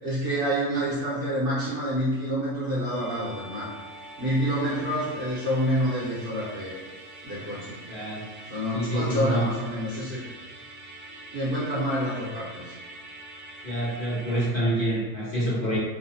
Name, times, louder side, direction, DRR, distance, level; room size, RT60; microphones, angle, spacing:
voice 1, 0.0-3.7 4.2-6.7 7.2-7.8 8.5-10.2 11.3-12.8, equal, 45° right, -10 dB, 0.9 m, -27 dB
Musical instrument, 2.8-14.5, right 2 dB, 85° right, 1.1 m, -44 dB
voice 2, 7.9-8.3 8.7-9.5 13.6-15.8, right 1 dB, 40° left, -11 dB, 1.0 m, -27 dB
2.8 x 2.1 x 2.7 m, 1.3 s
omnidirectional pair, 1.6 m